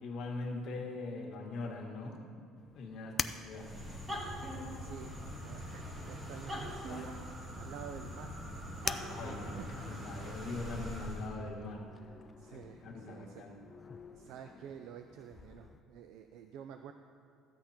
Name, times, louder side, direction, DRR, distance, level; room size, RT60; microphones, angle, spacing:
voice 1, 0.0-2.2 2.7-3.7 9.0-11.8 12.5-13.6, left 3 dB, 55° left, 0 dB, 1.7 m, -42 dB
sound 1, 2.6-15.8, left 5 dB, 25° left, 0.4 m, -47 dB
sound 2, 3.5-11.4, equal, 25° right, 1.9 m, -42 dB
voice 2, 4.8-5.1 5.4-8.3 9.1-9.3 9.6-10.0 12.4-13.5 14.1-16.9, right 8 dB, 70° right, 7 dB, 0.5 m, -49 dB
14.0 x 8.2 x 4.4 m, 2.4 s
cardioid pair, 135°, 0 cm